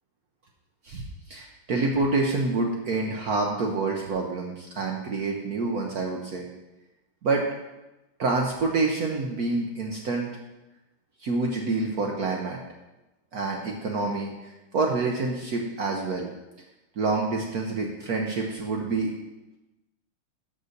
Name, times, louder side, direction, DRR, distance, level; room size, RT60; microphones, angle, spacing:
voice 1, 0.8-6.5 7.2-7.5 8.2-10.4 11.2-12.6 13.3-16.3 17.0-19.1, right 3 dB, 60° right, 0 dB, 1.0 m, -27 dB
6.7 x 5.4 x 6.5 m, 1.0 s
omnidirectional pair, 2.3 m